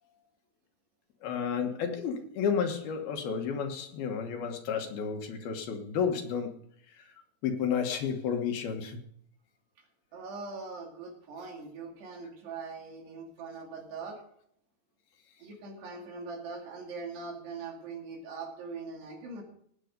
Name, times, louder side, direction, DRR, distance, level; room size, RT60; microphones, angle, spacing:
voice 1, 1.2-6.6 6.9-7.0 7.4-9.0, left 6 dB, 70° left, 4 dB, 3.1 m, -31 dB
voice 2, 10.1-14.2 15.4-19.4, right 4 dB, 80° right, 0 dB, 4.6 m, -41 dB
17.5 x 9.2 x 5.2 m, 0.66 s
omnidirectional pair, 4.7 m